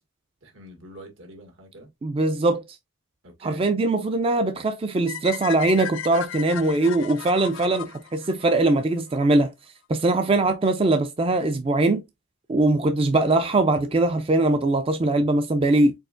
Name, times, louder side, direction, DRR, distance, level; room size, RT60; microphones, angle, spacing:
voice 1, 0.4-1.9 3.2-3.6 10.3-10.5, right 1 dB, 75° right, 1.8 m, -45 dB
voice 2, 2.0-2.6 3.4-9.5 9.9-12.0 12.5-15.9, right 2 dB, 25° right, 0.3 m, -21 dB
sound 1, 5.1-9.2, left 10 dB, 75° left, 0.4 m, -36 dB
4.6 x 4.2 x 2.4 m
head